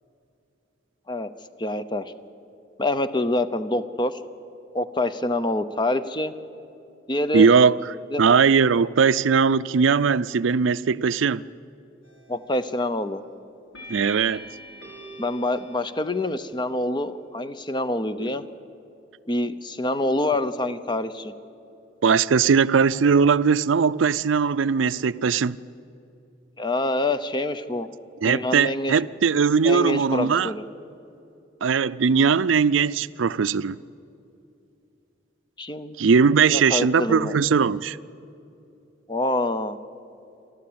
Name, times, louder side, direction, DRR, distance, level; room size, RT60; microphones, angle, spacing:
voice 1, 1.6-2.1 2.8-4.2 4.7-6.3 7.1-7.5 8.1-8.2 12.3-13.2 15.2-18.4 19.3-21.3 26.6-27.9 28.2-28.9 29.6-30.6 35.6-35.9 36.5-37.4 39.1-39.8, left 1 dB, 25° left, 0.8 m, -26 dB
voice 2, 7.3-7.8 8.2-11.4 13.9-14.5 22.0-25.6 28.2-30.5 31.6-33.8 36.0-38.0, right 5 dB, 85° right, 0.5 m, -19 dB
sound 1, 12.0-12.5 13.7-16.5, equal, 90° left, 5.6 m, -43 dB
28.0 x 12.5 x 8.7 m
head